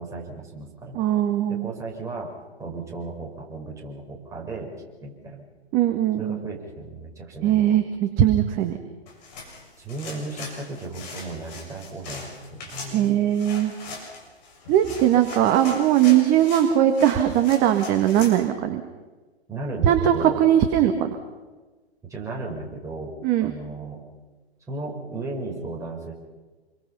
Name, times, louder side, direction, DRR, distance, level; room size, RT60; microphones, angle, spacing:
voice 1, 0.0-1.0 1.5-2.3 2.6-4.7 5.0-5.5 6.2-7.6 9.8-13.1 19.5-20.4 22.1-23.1 23.4-24.0 24.7-26.1, right 3 dB, 10° right, -2 dB, 5.3 m, -35 dB
voice 2, 0.9-1.7 5.7-6.4 7.4-8.8 12.9-13.7 14.7-18.8 19.8-21.2 23.2-23.5, right 11 dB, 25° right, 6 dB, 1.6 m, -20 dB
sound 1, 9.1-18.4, left 3 dB, 40° left, 7.0 m, -40 dB
27.5 x 23.5 x 5.7 m, 1.2 s
figure-of-eight pair, 120°, 33 cm